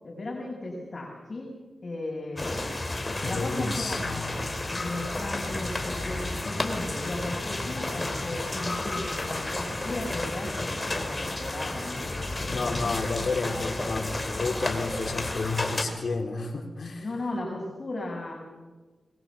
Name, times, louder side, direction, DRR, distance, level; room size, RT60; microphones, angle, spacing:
voice 1, 0.0-1.5 1.8-2.6 3.2-4.4 4.7-12.9 17.0-18.3, left 2 dB, 40° left, -3 dB, 5.9 m, -36 dB
sound 1, 2.4-15.8, left 2 dB, 25° left, 3.2 m, -32 dB
voice 2, 3.2-4.3 12.4-17.0, left 3 dB, 55° left, 2 dB, 4.0 m, -31 dB
22.0 x 21.0 x 7.1 m, 1.3 s
wide cardioid pair, 80°, 0 cm